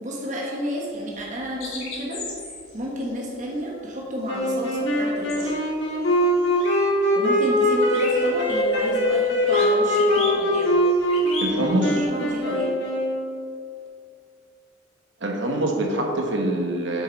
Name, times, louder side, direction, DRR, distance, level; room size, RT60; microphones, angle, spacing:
voice 1, 0.0-2.3 2.7-5.6 7.1-10.7 11.8-12.8, equal, 35° right, -3 dB, 1.3 m, -31 dB
sound 1, 0.9-7.0 7.3-12.6, left 3 dB, 90° left, 1.9 m, -38 dB
sound 2, 4.3-13.4, equal, 60° left, 1.6 m, -22 dB
voice 2, 11.4-12.0 15.2-17.0, right 1 dB, 60° right, 1 dB, 1.2 m, -24 dB
7.9 x 6.6 x 4.0 m, 2.3 s
head